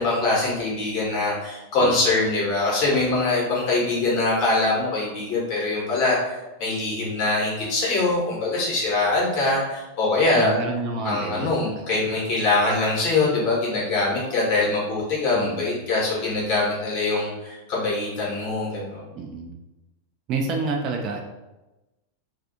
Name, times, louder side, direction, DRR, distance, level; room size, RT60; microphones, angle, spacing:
voice 1, 0.0-10.6 11.0-19.0, left 2 dB, 40° left, -5 dB, 0.9 m, -23 dB
voice 2, 10.3-12.1 15.3-15.8 19.1-19.5 20.3-21.2, right 3 dB, 35° right, 2 dB, 0.3 m, -29 dB
2.4 x 2.3 x 2.6 m, 1.0 s
figure-of-eight pair, 90°, 0 cm